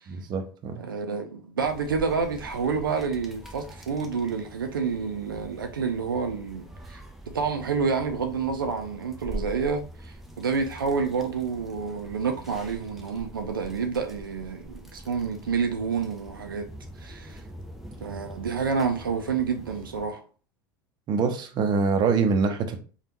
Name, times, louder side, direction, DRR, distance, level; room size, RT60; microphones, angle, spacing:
voice 1, 0.1-0.8 21.1-22.8, right 5 dB, 40° right, 0.6 m, -24 dB
voice 2, 0.8-7.0 7.3-16.7 17.0-17.4 18.0-20.2, right 5 dB, 90° right, 0.4 m, -29 dB
sound 1, 1.6-20.1, right 1 dB, ahead, 0.7 m, -44 dB
3.4 x 2.3 x 2.9 m
hypercardioid pair, 80°, 11 cm